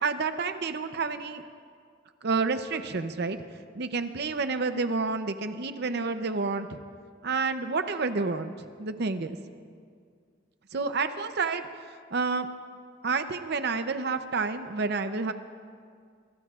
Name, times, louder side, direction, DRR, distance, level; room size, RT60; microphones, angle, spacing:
voice 1, 0.0-1.4 2.2-3.4 3.7-6.8 7.2-8.5 8.8-9.4 10.7-11.7 12.1-12.5 13.0-15.3, right 4 dB, 55° right, 9 dB, 0.6 m, -29 dB
24.0 x 24.0 x 2.4 m, 2.1 s
head